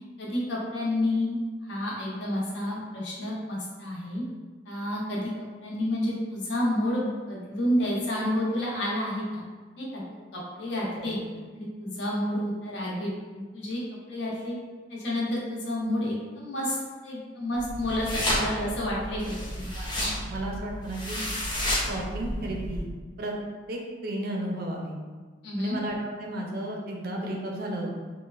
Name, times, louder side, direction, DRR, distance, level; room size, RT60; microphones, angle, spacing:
voice 1, 0.2-4.2 4.7-5.3 5.6-9.4 9.8-10.0 10.3-11.2 11.6-13.8 14.1-14.6 14.9-16.8 17.0-19.7 25.4-25.8, left 1 dB, 70° left, -4 dB, 0.7 m, -30 dB
voice 2, 10.9-11.4 19.7-21.2 21.9-22.8 23.2-23.3 23.7-24.9 25.6-27.9, right 1 dB, 55° right, 0 dB, 0.4 m, -33 dB
sound 1, 17.6-22.8, equal, 25° left, 0.6 m, -31 dB
3.1 x 2.2 x 2.3 m, 1.4 s
head